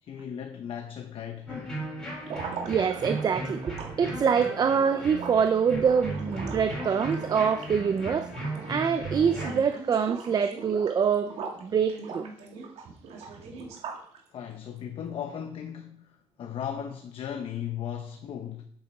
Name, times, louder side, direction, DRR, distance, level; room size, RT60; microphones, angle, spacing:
voice 1, 0.0-1.8 14.3-18.7, left 9 dB, 55° left, 1.0 m, -37 dB
sound 1, 1.5-9.6, right 1 dB, 5° left, 5.2 m, -36 dB
sound 2, 2.2-8.9 9.2-9.7 10.0-11.6 12.0-14.2, right 5 dB, 75° right, 2.1 m, -40 dB
voice 2, 2.6-11.3 11.6-12.3, right 6 dB, 35° right, 0.6 m, -25 dB
sound 3, 6.1-8.9 9.2-10.7 10.9-11.0 11.3-13.8, right 3 dB, 90° right, 3.5 m, -47 dB
8.7 x 8.2 x 6.0 m
cardioid pair, 145°, 11 cm